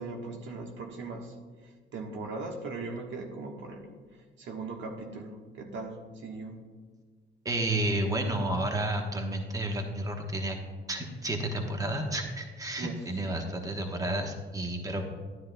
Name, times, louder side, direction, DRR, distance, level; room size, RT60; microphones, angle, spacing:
voice 1, 0.0-1.3 1.6-6.6 12.8-13.2, right 3 dB, 70° right, 2 dB, 1.3 m, -39 dB
voice 2, 7.4-10.6 10.9-15.0, right 1 dB, 15° right, 3 dB, 1.1 m, -31 dB
11.5 x 10.0 x 2.3 m, 1.5 s
cardioid pair, 90°, 20 cm